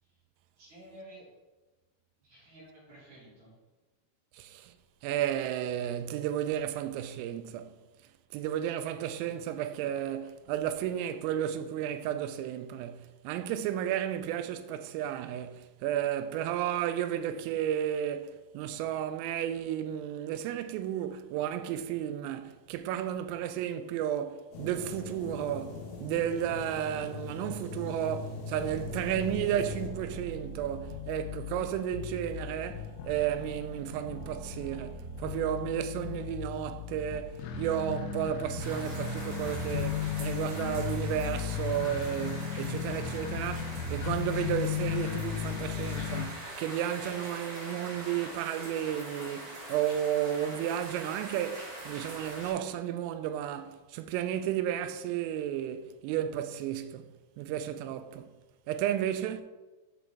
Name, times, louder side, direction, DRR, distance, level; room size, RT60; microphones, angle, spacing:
voice 1, 0.6-1.2 2.2-3.5, right 1 dB, 40° right, 3.2 m, -51 dB
voice 2, 4.3-4.7 5.0-7.7 8.3-57.1 57.4-58.3 58.7-59.4, right 10 dB, 85° right, 3.2 m, -33 dB
sound 1, 24.5-29.9, left 3 dB, 65° left, 2.3 m, -40 dB
sound 2, 28.6-46.2, left 7 dB, 85° left, 2.6 m, -36 dB
sound 3, 38.6-52.5, right 1 dB, 60° right, 3.1 m, -43 dB
7.4 x 6.1 x 3.4 m
omnidirectional pair, 5.8 m